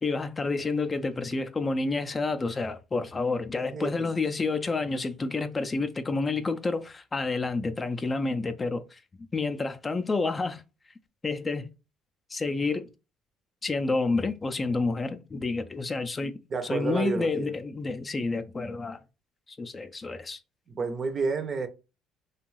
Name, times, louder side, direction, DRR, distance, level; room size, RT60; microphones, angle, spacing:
voice 1, 0.0-9.0 9.3-10.6 11.2-11.7 12.3-12.9 13.6-16.4 16.6-19.0 19.5-20.4, left 3 dB, 25° left, 0.3 m, -29 dB
voice 2, 3.7-4.1 16.5-17.5 20.7-21.7, right 4 dB, 40° right, 0.5 m, -30 dB
2.5 x 2.3 x 3.0 m
supercardioid pair, 85°, 0 cm